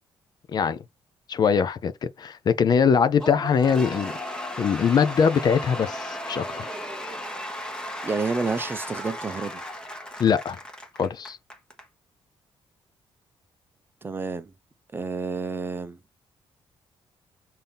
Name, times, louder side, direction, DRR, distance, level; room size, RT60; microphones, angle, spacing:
voice 1, 1.3-4.1 4.6-6.7 10.2-10.6 11.0-11.4, left 6 dB, 45° left, 0.5 m, -22 dB
Cheering / Applause / Crowd, 3.2-11.8, left 1 dB, 10° left, 1.1 m, -35 dB
voice 2, 8.0-9.6 14.0-14.5 14.9-16.0, right 4 dB, 20° right, 0.6 m, -29 dB
5.5 x 2.7 x 3.4 m
cardioid pair, 125°, 10 cm